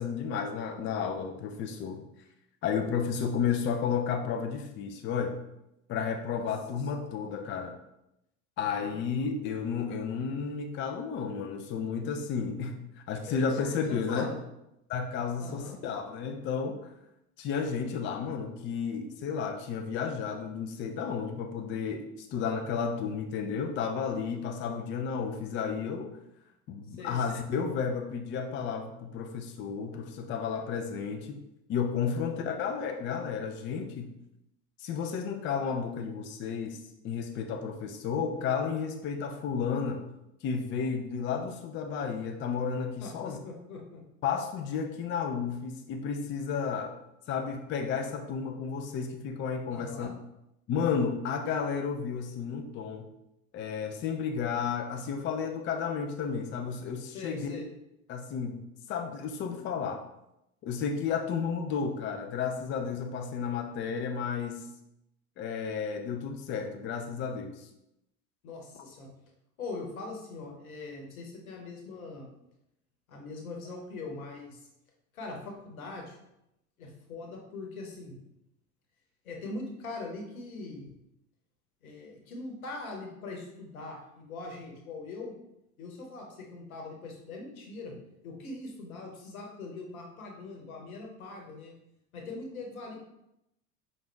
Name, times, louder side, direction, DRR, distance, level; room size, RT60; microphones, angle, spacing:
voice 1, 0.0-2.0 2.6-5.4 5.9-7.7 8.6-12.8 13.1-14.3 14.9-16.9 17.4-26.1 26.7-31.4 31.7-34.1 34.8-36.8 37.0-40.0 40.4-43.4 44.2-46.9 47.3-50.1 50.7-53.1 53.5-57.6 58.1-58.6 58.9-60.0 60.6-64.6 65.4-67.6, left 6 dB, 30° left, 4 dB, 0.4 m, -32 dB
voice 2, 8.6-8.9 13.3-13.4 13.9-14.4 15.4-15.8 26.9-27.2 32.1-32.5 43.0-44.0 49.7-50.1 57.1-57.7 68.4-69.1 69.6-72.3 73.1-74.7 75.1-76.2 76.8-78.2 79.2-80.9 81.8-85.3 85.8-88.0 88.2-91.7 92.1-93.0, left 3 dB, 75° left, 0 dB, 1.1 m, -42 dB
5.0 x 2.5 x 3.3 m, 0.84 s
figure-of-eight pair, 70°, 42 cm